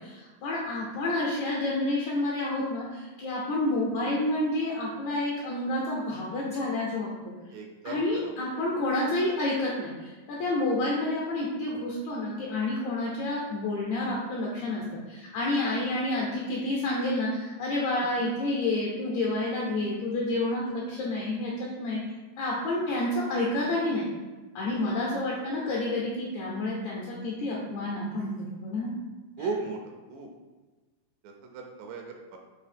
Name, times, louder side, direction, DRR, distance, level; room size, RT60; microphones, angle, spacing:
voice 1, 0.0-7.1 7.8-22.0 22.4-24.1 24.5-28.9, left 2 dB, 80° left, -4 dB, 1.7 m, -29 dB
voice 2, 7.5-8.6 9.0-9.2 15.9-16.1 20.9-21.1 22.8-23.1 24.7-25.0 25.6-25.7 29.4-29.8 30.1-30.3 31.2-32.4, right 4 dB, 80° right, 2 dB, 2.1 m, -38 dB
5.5 x 2.7 x 3.3 m, 1.3 s
omnidirectional pair, 4.0 m